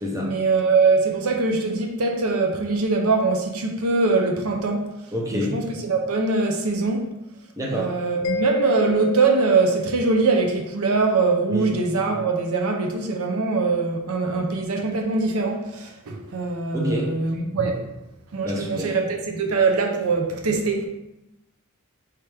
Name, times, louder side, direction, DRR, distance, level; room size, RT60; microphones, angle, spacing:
voice 1, 0.2-4.9 5.3-7.1 7.7-17.9 18.3-20.9, right 3 dB, 85° right, 3 dB, 0.6 m, -22 dB
voice 2, 5.1-5.6 7.6-7.9 11.5-11.7 16.7-17.1 18.4-18.9, left 1 dB, 15° right, -2 dB, 0.7 m, -27 dB
Mallet percussion, 8.2-10.8, left 2 dB, 70° left, 0.4 m, -29 dB
4.9 x 2.9 x 3.3 m, 0.90 s
head